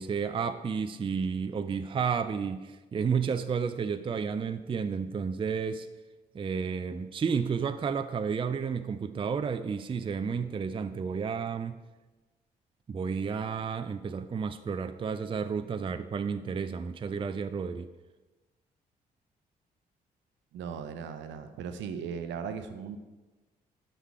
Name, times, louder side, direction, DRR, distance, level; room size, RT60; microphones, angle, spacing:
voice 1, 0.0-5.9 6.3-11.8 12.9-17.9, right 6 dB, 25° right, 10 dB, 0.5 m, -31 dB
voice 2, 20.5-23.0, right 6 dB, 60° right, 9 dB, 0.8 m, -37 dB
8.9 x 6.5 x 4.6 m, 1.2 s
figure-of-eight pair, 40°, 21 cm